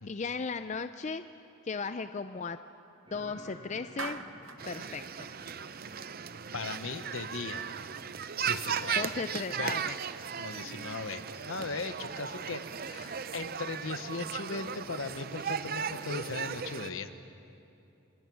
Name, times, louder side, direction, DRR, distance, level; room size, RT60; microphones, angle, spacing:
voice 1, 0.1-1.2 1.6-2.6 3.1-4.2 4.6-5.3 9.0-10.0, left 4 dB, 35° left, 10 dB, 0.5 m, -36 dB
sound 1, 3.1-8.6, left 1 dB, 25° right, 6.4 m, -54 dB
Clapping, 4.0-4.7, right 5 dB, 75° right, 1.0 m, -40 dB
sound 2, 4.6-16.9, right 7 dB, 45° right, 0.6 m, -37 dB
voice 2, 6.5-7.7 8.4-9.1 9.5-9.8 10.4-17.1, left 4 dB, 75° left, 10 dB, 1.1 m, -38 dB
29.5 x 21.0 x 6.2 m, 2.8 s
head